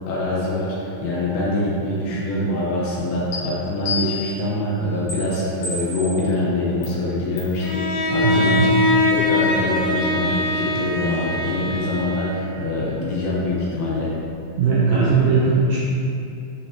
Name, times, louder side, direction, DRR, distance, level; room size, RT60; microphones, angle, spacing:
voice 1, 0.1-14.1 14.9-15.1, left 1 dB, 70° left, -6 dB, 2.7 m, -24 dB
sound 1, 3.3-3.4 3.9-4.5 5.1-5.2 5.6-6.2 6.8-6.9 7.4-7.6, left 3 dB, 55° left, 2.3 m, -29 dB
Bowed string instrument, 7.6-12.6, left 2 dB, 85° left, 1.7 m, -22 dB
voice 2, 8.2-8.7 14.6-15.8, right 5 dB, 75° right, -7 dB, 2.0 m, -19 dB
8.3 x 6.4 x 3.0 m, 2.7 s
omnidirectional pair, 4.9 m